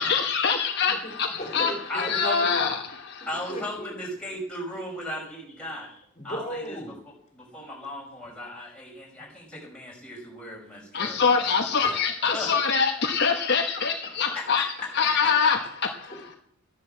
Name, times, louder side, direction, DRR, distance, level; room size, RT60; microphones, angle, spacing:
voice 1, 0.0-3.3 10.9-14.7 14.9-16.1, left 5 dB, 50° left, 3 dB, 1.2 m, -24 dB
voice 2, 1.4-2.6 3.5-3.9 5.8-7.0 9.2-9.3 11.8-12.0 16.1-16.4, equal, 30° left, 3 dB, 3.5 m, -37 dB
voice 3, 1.9-2.4 3.3-5.9 6.2-6.8 7.3-11.9 12.3-12.5 14.3-14.4 14.8-14.9, left 1 dB, 5° left, -4 dB, 5.7 m, -36 dB
13.5 x 11.0 x 7.8 m, 0.66 s
head